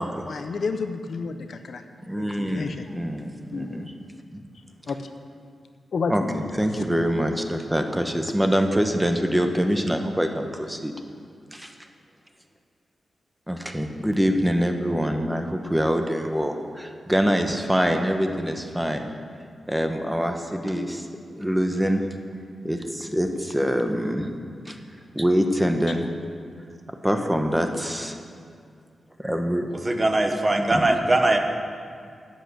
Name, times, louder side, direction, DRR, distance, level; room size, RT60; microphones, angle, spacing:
voice 1, 0.3-1.8 2.2-2.9 3.5-3.8 4.9-5.0 5.9-6.5 6.8-6.9, left 4 dB, 60° left, 8 dB, 0.8 m, -30 dB
voice 2, 2.1-3.8 4.3-4.4 6.1-6.2 6.5-10.9 11.5-11.7 13.5-19.1 19.7-21.1 21.4-22.0 22.6-24.3 24.7-24.8 25.1-26.1 27.0-28.2 29.2-29.7 30.7-30.8, equal, 5° right, 5 dB, 1.0 m, -24 dB
voice 3, 29.8-31.4, right 2 dB, 25° right, 5 dB, 1.1 m, -21 dB
11.5 x 8.2 x 8.4 m, 2.2 s
wide cardioid pair, 135°, 0 cm